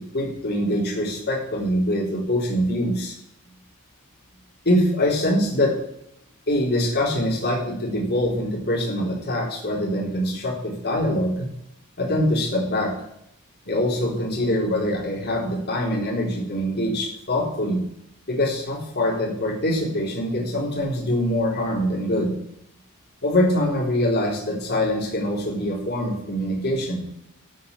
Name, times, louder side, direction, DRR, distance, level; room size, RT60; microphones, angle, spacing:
voice 1, 0.1-3.1 4.6-5.8 6.5-11.5 12.0-12.9 13.6-17.8 18.3-22.3 23.2-27.0, left 1 dB, 50° left, -2 dB, 4.0 m, -24 dB
13.0 x 5.4 x 8.5 m, 0.73 s
head